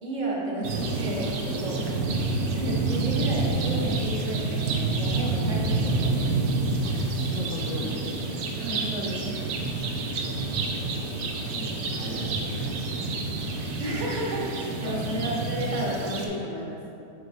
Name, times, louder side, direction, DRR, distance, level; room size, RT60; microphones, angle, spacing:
voice 1, 0.0-1.8 2.5-6.3 8.6-9.2 13.8-16.8, right 1 dB, 30° right, -4 dB, 1.1 m, -32 dB
sound 1, 0.6-16.3, right 3 dB, 80° right, 1.2 m, -28 dB
voice 2, 6.8-8.2 10.9-13.3 14.8-15.1, left 2 dB, 65° left, 0 dB, 0.9 m, -38 dB
5.2 x 3.9 x 5.5 m, 2.7 s
omnidirectional pair, 1.6 m